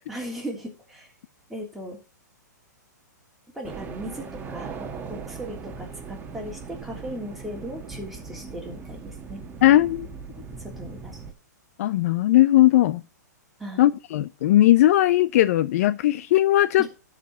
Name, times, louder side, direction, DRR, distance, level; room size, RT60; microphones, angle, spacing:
voice 1, 0.1-1.1 1.5-2.0 3.5-4.7 5.1-9.4 10.6-11.2 13.6-13.9 16.8-16.9, equal, ahead, 3.1 m, -37 dB
sound 1, 3.6-11.3, right 5 dB, 20° right, 1.4 m, -39 dB
voice 2, 9.6-10.1 11.8-13.0 13.8-16.9, left 14 dB, 55° left, 0.5 m, -18 dB
12.5 x 5.0 x 5.6 m
hypercardioid pair, 130°, 10 cm